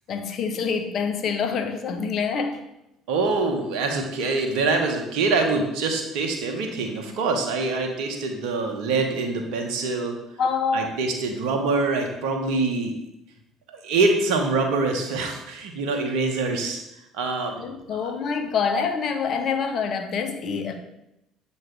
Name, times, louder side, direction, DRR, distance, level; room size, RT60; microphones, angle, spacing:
voice 1, 0.1-2.6 10.4-10.9 17.6-20.7, left 5 dB, 55° left, 7 dB, 0.8 m, -26 dB
voice 2, 3.1-10.1 10.7-12.9 13.7-16.8 17.1-17.6 18.0-18.1, right 3 dB, 70° right, 4 dB, 1.1 m, -25 dB
7.7 x 3.3 x 4.7 m, 0.86 s
hypercardioid pair, 60°, 0 cm